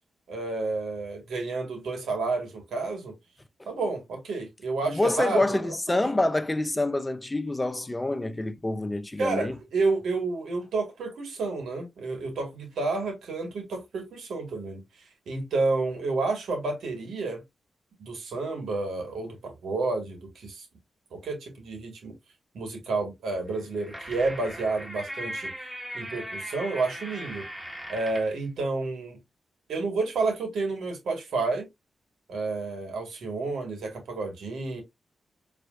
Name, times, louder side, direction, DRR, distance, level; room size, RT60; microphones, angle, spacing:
voice 1, 0.3-3.1 3.7-6.0 9.2-14.8 15.3-17.4 18.0-20.6 21.1-22.1 22.5-25.5 25.9-27.5 27.9-29.2 29.7-31.7 32.3-34.8, right 3 dB, 80° right, 1.9 m, -30 dB
voice 2, 4.8-9.6, left 2 dB, 20° left, 0.7 m, -27 dB
sound 1, 23.5-28.4, equal, 10° right, 2.0 m, -38 dB
4.4 x 3.3 x 2.6 m
supercardioid pair, 40°, 0 cm